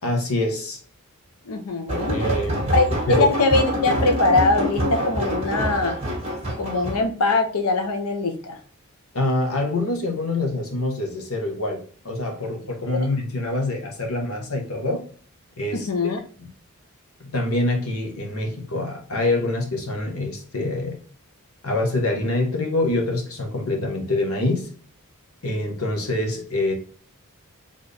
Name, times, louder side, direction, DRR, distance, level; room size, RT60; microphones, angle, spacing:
voice 1, 0.0-0.8 2.1-2.7 3.1-3.3 9.1-15.0 15.6-15.9 17.2-21.0 21.6-24.7 25.4-26.7, left 2 dB, 70° left, 2 dB, 1.3 m, -25 dB
voice 2, 1.5-2.2 2.7-6.0 6.6-8.6 15.7-16.2, left 3 dB, 85° left, 6 dB, 0.8 m, -22 dB
sound 1, 1.9-7.0, right 1 dB, 25° right, 1.8 m, -25 dB
4.2 x 3.6 x 3.4 m, 0.44 s
head